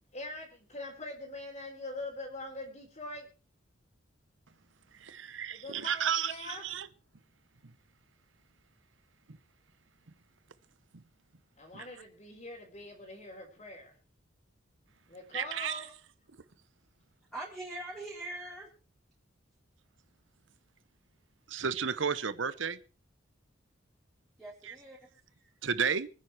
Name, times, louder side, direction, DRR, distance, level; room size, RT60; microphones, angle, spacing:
voice 1, 0.1-3.3 5.5-6.6 11.6-13.9 15.1-15.9, left 2 dB, 35° left, 4.0 m, -43 dB
voice 2, 4.9-6.9 7.6-7.7 10.9-11.0 11.7-11.9 15.3-15.9 21.5-22.8 24.6-24.8 25.6-26.1, right 7 dB, 80° right, 0.9 m, -33 dB
voice 3, 17.3-18.7 24.4-25.0 25.4-25.5, right 2 dB, ahead, 5.0 m, -42 dB
24.5 x 9.8 x 4.5 m
head